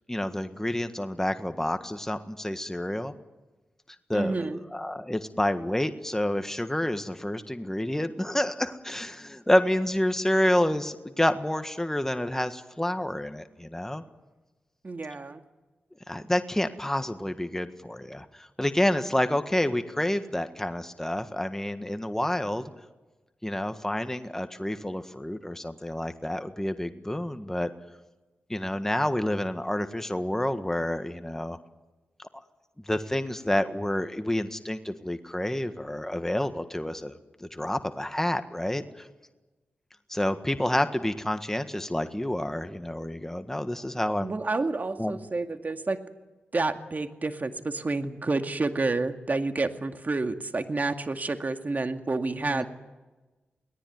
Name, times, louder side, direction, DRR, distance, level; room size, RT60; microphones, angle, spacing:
voice 1, 0.1-3.1 4.1-14.0 16.1-22.6 23.4-27.7 28.5-31.6 32.3-32.4 32.9-37.1 37.4-39.1 40.1-44.3 45.0-45.2 52.4-52.7, left 1 dB, 10° left, 9 dB, 1.6 m, -29 dB
voice 2, 4.1-4.6 14.8-15.4 44.2-46.0 46.5-52.7, right 3 dB, 45° right, 6 dB, 2.2 m, -29 dB
23.0 x 18.5 x 9.5 m, 1.2 s
cardioid pair, 45°, 4 cm